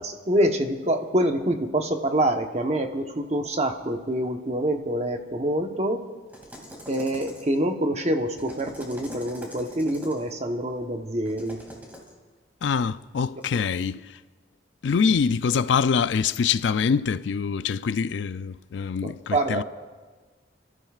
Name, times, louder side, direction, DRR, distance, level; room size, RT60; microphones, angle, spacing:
voice 1, 0.0-6.1 6.9-11.6 19.0-19.6, right 1 dB, 35° right, 1.0 m, -26 dB
sound 1, 6.3-7.7 8.3-10.3 11.3-12.1 13.4-13.6, equal, 10° right, 2.4 m, -43 dB
voice 2, 12.6-14.0 14.8-19.6, left 6 dB, 85° left, 0.4 m, -24 dB
28.0 x 13.5 x 2.4 m
head